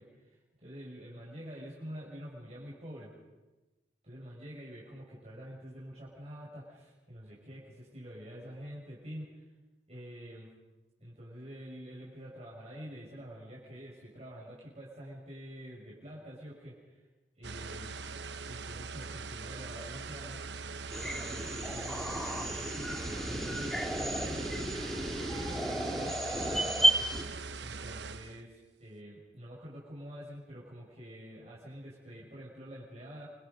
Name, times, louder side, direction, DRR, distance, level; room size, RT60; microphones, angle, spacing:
voice 1, 0.0-3.1 4.0-9.5 9.9-10.5 11.0-17.0 17.4-17.9 18.4-20.4 21.0-33.3, equal, 35° right, -5 dB, 6.0 m, -47 dB
sound 1, 17.4-28.4, right 4 dB, 80° right, 0.9 m, -42 dB
sound 2, 20.9-27.2, right 1 dB, ahead, 2.7 m, -32 dB
28.5 x 25.0 x 5.3 m, 1.2 s
head